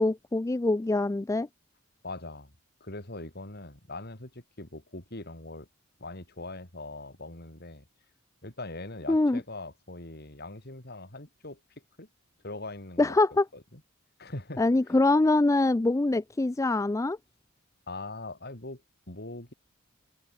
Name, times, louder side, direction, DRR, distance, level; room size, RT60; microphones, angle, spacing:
voice 1, 0.0-1.5 9.1-9.4 13.0-13.4 14.6-17.2, left 2 dB, 15° left, 0.3 m, -24 dB
voice 2, 2.0-2.5 2.8-5.7 6.0-7.9 8.4-12.1 12.4-13.2 13.5-13.8 14.2-14.6 17.9-19.5, left 2 dB, 50° left, 4.0 m, -41 dB
open air
head